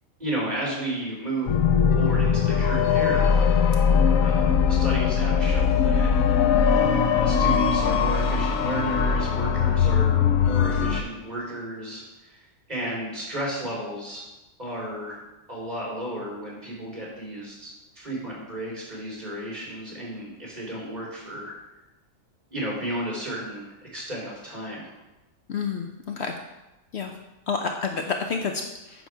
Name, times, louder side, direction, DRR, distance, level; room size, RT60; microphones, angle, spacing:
voice 1, 0.2-1.6 2.0-3.4 4.2-6.1 7.1-14.2 14.6-15.2 15.5-21.5 22.5-24.9, right 1 dB, 30° right, -4 dB, 3.1 m, -33 dB
sound 1, 1.5-11.0, left 7 dB, 90° left, 1.1 m, -21 dB
voice 2, 25.5-26.3 26.9-27.1 27.5-29.1, left 5 dB, 60° left, 4 dB, 0.8 m, -29 dB
9.3 x 6.2 x 4.6 m, 1.0 s
omnidirectional pair, 1.4 m